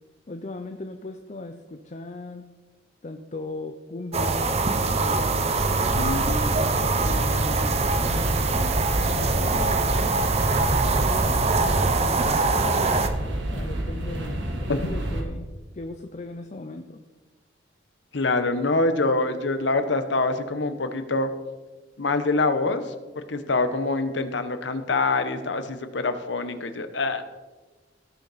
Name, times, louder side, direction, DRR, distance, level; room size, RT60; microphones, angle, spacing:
voice 1, 0.3-2.5 3.0-5.5 6.5-9.9 10.9-13.1 13.5-17.0, left 2 dB, 40° left, 6 dB, 0.6 m, -38 dB
sound 1, 4.1-13.1, right 3 dB, 35° right, 0.7 m, -23 dB
sound 2, 5.4-15.2, right 1 dB, 75° right, 1.8 m, -30 dB
voice 2, 5.9-6.5 14.7-14.9 18.1-21.3 22.0-27.2, left 3 dB, 70° left, 9 dB, 1.0 m, -25 dB
17.0 x 6.8 x 4.1 m, 1.2 s
head